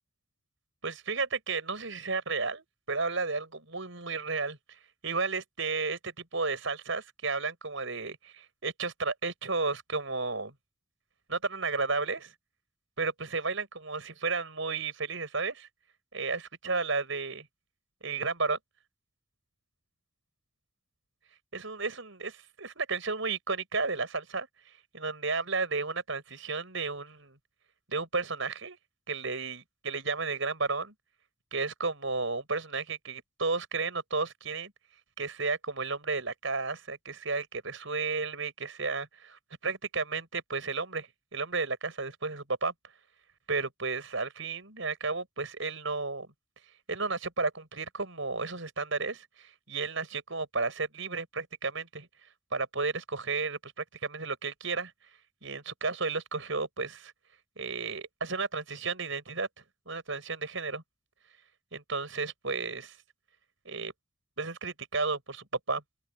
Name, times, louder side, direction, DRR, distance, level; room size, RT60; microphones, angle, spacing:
voice 1, 0.8-10.5 11.3-12.3 13.0-15.7 16.1-17.5 18.0-18.6 21.5-27.4 27.9-28.8 29.1-30.9 31.5-34.7 35.2-42.7 43.5-46.3 46.9-52.1 52.5-54.9 55.4-57.1 57.6-59.5 59.9-60.8 61.7-63.0 63.6-63.9 64.4-65.8, right 4 dB, 65° right, 5.7 m, -33 dB
open air
head